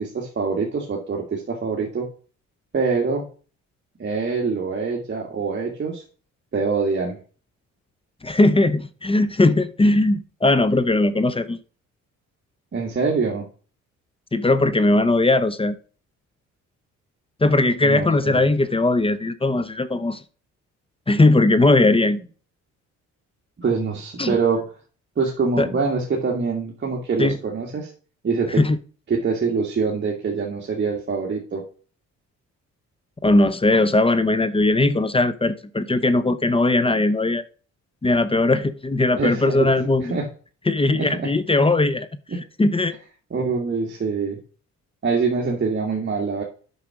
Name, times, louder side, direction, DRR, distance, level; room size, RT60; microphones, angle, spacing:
voice 1, 0.0-2.1 2.7-3.3 4.0-6.0 6.5-7.2 12.7-13.5 17.8-18.5 23.6-24.6 25.2-27.9 28.2-28.6 29.1-31.6 39.2-39.7 40.0-40.3 40.9-41.2 43.3-44.4 45.0-46.4, right 4 dB, 35° right, 1.9 m, -24 dB
voice 2, 8.2-11.6 14.3-15.8 17.4-20.2 21.1-22.2 24.2-24.4 25.6-25.7 27.2-27.4 28.6-28.8 33.2-37.4 38.0-40.1 40.7-42.1 42.6-43.0, left 2 dB, 20° left, 0.7 m, -19 dB
8.6 x 5.6 x 4.9 m
cardioid pair, 90°, 30 cm